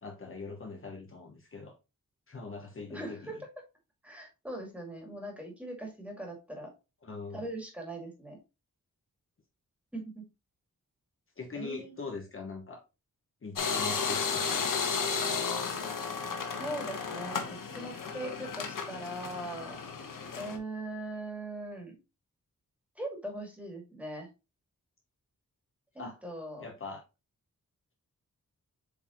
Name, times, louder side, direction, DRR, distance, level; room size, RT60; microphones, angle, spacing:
voice 1, 0.0-1.8 2.3-3.4 7.0-7.4 11.4-12.8 13.4-14.7 26.0-26.2 26.6-27.0, left 4 dB, 40° left, 1.1 m, -42 dB
voice 2, 2.9-3.5 4.0-6.7 7.3-8.4 9.9-10.3 11.5-12.0 16.6-19.8 20.4-22.0 23.0-24.3 25.9-26.6, right 1 dB, 5° right, 2.2 m, -40 dB
sound 1, 13.6-20.6, left 5 dB, 90° left, 1.3 m, -33 dB
7.9 x 3.9 x 3.0 m
wide cardioid pair, 160°, 32 cm